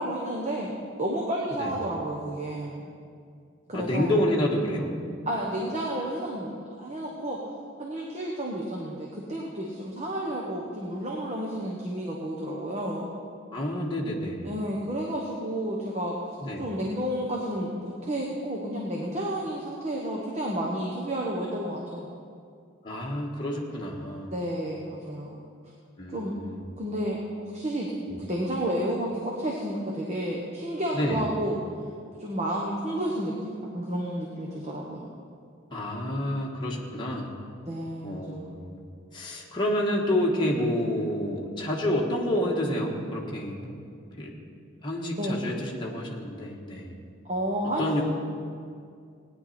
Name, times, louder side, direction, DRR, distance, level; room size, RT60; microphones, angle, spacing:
voice 1, 0.0-2.9 3.7-4.2 5.3-7.4 7.8-13.1 14.4-16.2 16.6-22.1 24.3-25.4 26.1-26.3 26.8-27.9 28.2-31.6 32.2-35.1 37.6-38.5 45.2-45.4 47.3-48.0, right 1 dB, 30° right, -2 dB, 1.2 m, -31 dB
voice 2, 3.7-4.9 13.5-14.5 16.4-16.7 22.8-24.3 26.0-26.6 28.1-28.2 30.9-31.2 35.7-37.3 38.0-38.8 39.1-43.8 44.2-44.3 44.8-46.9 47.8-48.0, left 1 dB, 20° left, -3 dB, 1.5 m, -29 dB
17.5 x 10.0 x 4.3 m, 2.3 s
head